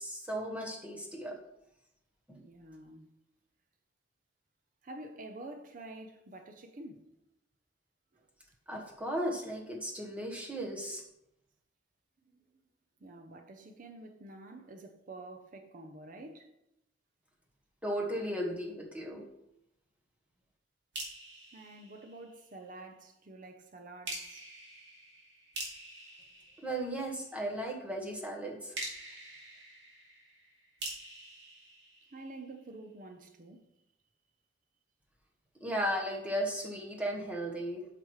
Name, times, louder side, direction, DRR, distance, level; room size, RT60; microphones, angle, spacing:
voice 1, 0.0-1.4 2.3-2.4 8.7-11.0 17.8-19.2 26.6-28.7 35.6-37.9, equal, 5° right, 1.2 m, -36 dB
voice 2, 2.4-3.1 4.8-7.1 8.1-8.3 12.3-12.4 13.0-16.5 21.5-24.5 32.1-33.6, right 2 dB, 45° right, 0.7 m, -48 dB
sound 1, 20.9-22.7 24.0-27.4 28.7-32.6, right 2 dB, 75° right, 2.4 m, -45 dB
8.5 x 5.8 x 3.2 m
head